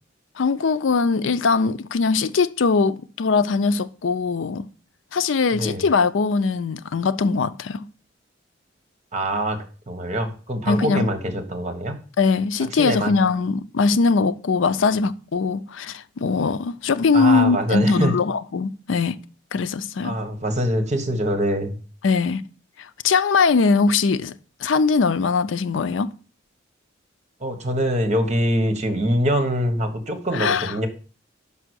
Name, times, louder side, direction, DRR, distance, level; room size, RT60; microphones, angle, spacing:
voice 1, 0.4-4.7 5.1-7.9 10.7-11.1 12.2-19.2 19.5-20.2 22.0-22.4 22.8-26.1 30.3-30.7, left 4 dB, 75° left, 0.5 m, -21 dB
voice 2, 5.5-5.8 9.1-9.6 9.9-12.0 12.7-13.1 17.1-18.1 20.0-21.8 27.4-30.9, equal, 40° right, 1.4 m, -24 dB
5.9 x 5.6 x 6.3 m
head